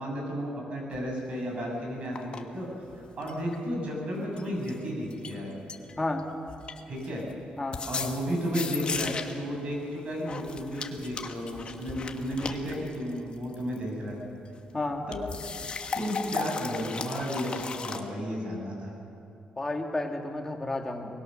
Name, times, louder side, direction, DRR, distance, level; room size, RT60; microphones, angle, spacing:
voice 1, 0.0-2.7 2.9-5.5 6.8-7.2 7.9-14.2 15.1-15.2 15.9-18.9, equal, 45° right, -1 dB, 6.8 m, -33 dB
sound 1, 0.9-1.0 2.1-2.4 2.9-3.6 4.4-4.8 5.1-5.4 5.7-6.2 6.5-7.3 7.7-9.4 10.2-13.8 15.1-18.0, left 5 dB, 40° left, 1.4 m, -36 dB
voice 2, 14.7-15.1 19.6-21.1, left 2 dB, 15° left, 2 dB, 2.1 m, -31 dB
23.5 x 20.5 x 6.5 m, 2.6 s
cardioid pair, 130°, 3 cm